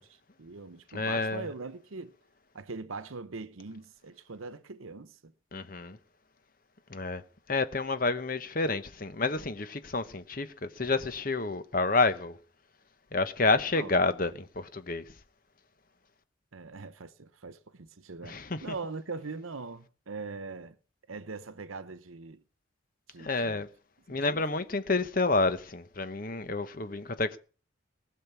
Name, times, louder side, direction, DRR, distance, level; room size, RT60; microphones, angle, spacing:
voice 1, 0.0-2.2 2.5-5.3 13.7-13.9 16.5-20.8 21.1-22.4 23.1-23.7 24.1-24.4, right 4 dB, 90° right, 0.9 m, -42 dB
voice 2, 0.9-1.5 5.5-6.0 6.9-7.2 7.5-12.4 13.1-15.1 18.2-18.6 23.2-23.7 24.1-27.4, left 3 dB, 45° left, 1.1 m, -29 dB
20.0 x 6.7 x 6.9 m
head